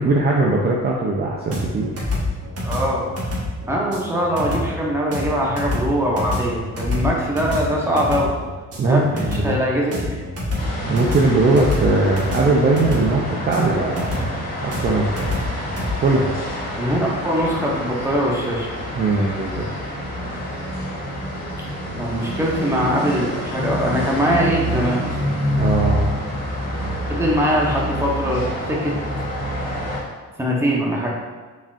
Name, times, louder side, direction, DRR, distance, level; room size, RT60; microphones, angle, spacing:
voice 1, 0.0-2.0 8.8-9.6 10.9-15.3 16.0-16.4 19.0-19.7 25.6-26.1, right 3 dB, 35° right, -2 dB, 0.5 m, -20 dB
sound 1, 1.5-15.9, left 1 dB, 50° right, 1.3 m, -27 dB
voice 2, 2.6-3.1 3.7-8.3 8.8-10.1 16.8-18.7 21.9-25.2 27.1-28.9 30.4-31.1, equal, 10° right, -3 dB, 0.9 m, -22 dB
sound 2, 10.6-30.0, equal, 30° left, 1.5 m, -27 dB
4.0 x 3.6 x 2.4 m, 1.4 s
cardioid pair, 90°, 30 cm